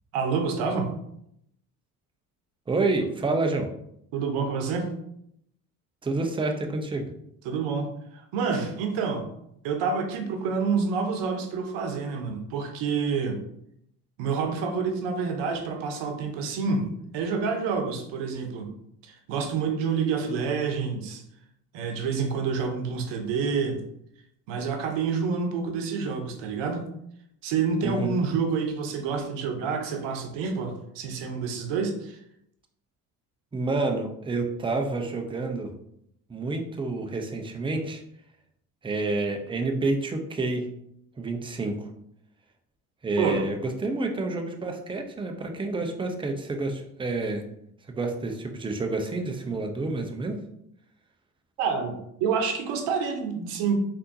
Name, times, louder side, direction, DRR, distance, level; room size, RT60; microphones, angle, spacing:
voice 1, 0.1-0.9 4.1-4.9 7.4-9.3 9.6-13.4 14.2-16.9 17.1-18.7 19.0-21.2 21.7-23.8 24.5-26.9 27.4-32.2 43.2-43.4 51.6-53.8, right 5 dB, 65° right, 4 dB, 0.8 m, -28 dB
voice 2, 2.7-3.7 6.0-7.1 27.8-28.2 33.5-35.7 36.3-38.0 38.8-40.7 41.2-41.8 43.0-43.6 43.8-47.4 47.9-50.4, right 3 dB, 10° right, 4 dB, 0.5 m, -28 dB
3.5 x 2.8 x 2.6 m, 0.74 s
hypercardioid pair, 60°, 46 cm